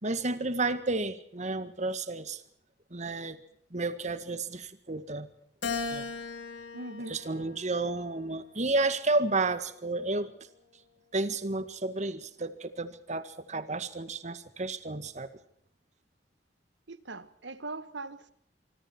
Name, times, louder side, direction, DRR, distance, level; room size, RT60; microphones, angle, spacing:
voice 1, 0.0-2.4 2.9-3.4 3.7-5.3 5.9-6.0 7.1-10.3 11.1-15.3, right 2 dB, 40° right, 1.9 m, -31 dB
Keyboard (musical), 5.6-8.1 8.7-9.9, left 4 dB, 80° left, 3.7 m, -39 dB
voice 2, 6.7-7.4 16.9-18.3, right 2 dB, 90° right, 1.6 m, -41 dB
25.5 x 24.5 x 4.6 m
head